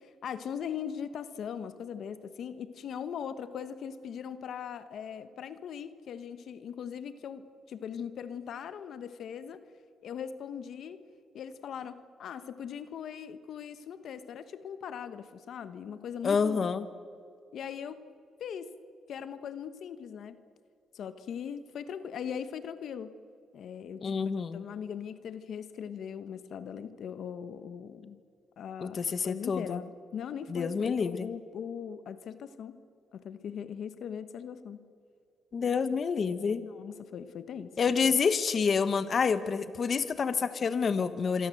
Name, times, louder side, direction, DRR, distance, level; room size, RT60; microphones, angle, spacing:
voice 1, 0.0-9.7 10.0-11.0 11.3-16.6 17.5-18.0 18.4-18.8 19.1-20.4 20.9-23.1 23.5-24.2 24.5-28.2 28.6-32.7 33.1-34.8 36.7-37.8, left 8 dB, 65° left, 11 dB, 1.2 m, -40 dB
voice 2, 16.2-16.9 24.0-24.6 28.8-29.8 30.5-31.3 35.5-36.7 37.8-41.5, left 5 dB, 40° left, 12 dB, 1.2 m, -28 dB
26.5 x 23.5 x 7.8 m, 2.3 s
cardioid pair, 125°, 0 cm